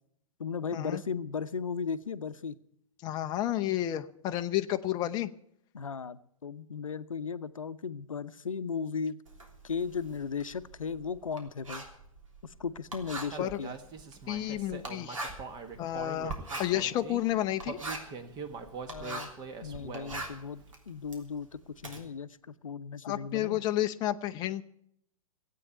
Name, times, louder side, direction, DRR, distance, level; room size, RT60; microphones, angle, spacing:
voice 1, 0.4-2.6 5.7-9.2 9.6-11.8 12.4-13.7 18.9-19.3 19.6-23.6, left 6 dB, 70° left, 14 dB, 0.7 m, -36 dB
voice 2, 3.0-5.3 13.4-13.6 14.3-15.2 15.8-17.8 23.0-24.6, left 13 dB, 25° left, 8 dB, 0.6 m, -31 dB
Writing, 9.3-19.5 19.8-22.0, right 2 dB, 70° right, 3.2 m, -42 dB
Human voice, 13.3-17.2 17.6-20.3, right 4 dB, 25° right, 1.5 m, -42 dB
16.5 x 8.7 x 9.1 m, 0.71 s
figure-of-eight pair, 110°, 18 cm